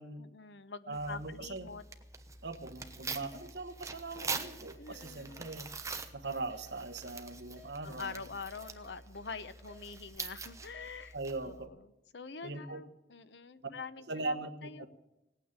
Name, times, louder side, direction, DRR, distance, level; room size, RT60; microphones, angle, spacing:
voice 1, 0.2-1.8 4.8-5.5 7.8-11.1 11.4-14.9, left 4 dB, 75° left, 13 dB, 0.9 m, -45 dB
Tearing, 0.9-11.7, right 4 dB, 20° right, 1.1 m, -44 dB
voice 2, 0.9-1.7 2.4-5.7 6.1-8.2 11.1-11.7 12.4-12.8 14.1-14.9, right 3 dB, 70° right, 9 dB, 1.3 m, -40 dB
sound 1, 2.8-11.1, left 3 dB, 5° left, 5.6 m, -60 dB
18.0 x 9.2 x 8.8 m, 0.96 s
head